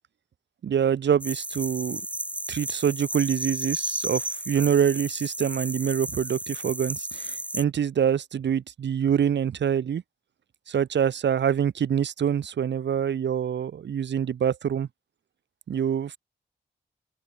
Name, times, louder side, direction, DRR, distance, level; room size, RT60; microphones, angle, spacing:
voice 1, 0.6-2.0 2.5-10.0 10.7-14.9 15.7-16.2, right 8 dB, 60° right, 0.6 m, -25 dB
sound 1, 1.2-7.6, right 1 dB, 5° right, 1.1 m, -33 dB
open air
supercardioid pair, 40°, 20 cm